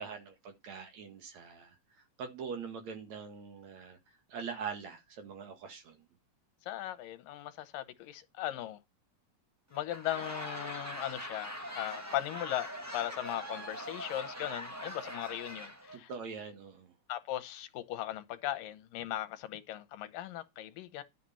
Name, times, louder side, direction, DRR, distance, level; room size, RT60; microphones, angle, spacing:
voice 1, 0.0-1.8 2.2-4.0 4.3-6.0 15.9-16.9, right 6 dB, 60° right, 2.9 m, -43 dB
voice 2, 6.7-8.8 9.7-12.7 12.9-16.1 17.1-21.0, left 13 dB, 85° left, 2.7 m, -38 dB
Laughter / Crowd, 9.7-16.0, equal, 10° right, 0.9 m, -42 dB
11.0 x 7.6 x 4.2 m
omnidirectional pair, 3.8 m